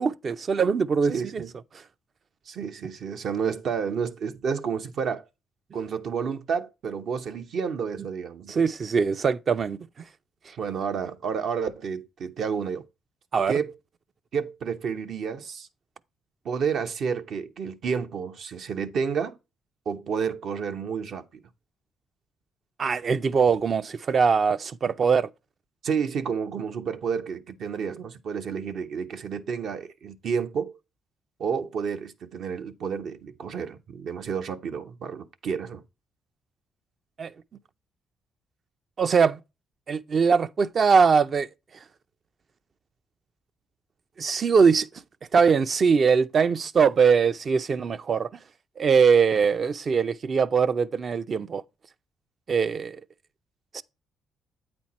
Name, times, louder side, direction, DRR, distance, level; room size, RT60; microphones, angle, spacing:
voice 1, 0.0-1.4 8.5-9.8 13.3-13.5 22.8-25.3 37.2-37.3 39.0-39.4 39.9-41.5 44.2-44.9 45.3-48.3 48.8-51.6 52.5-53.0 53.7-53.8, right 5 dB, 45° right, 0.5 m, -22 dB
voice 2, 1.1-1.5 2.5-5.3 5.7-8.6 10.6-12.8 13.5-13.7 14.3-15.7 16.4-19.4 19.9-21.4 25.8-30.7 31.4-35.8, right 6 dB, 65° right, 0.8 m, -30 dB
8.7 x 4.4 x 4.2 m
cardioid pair, 90°, 0 cm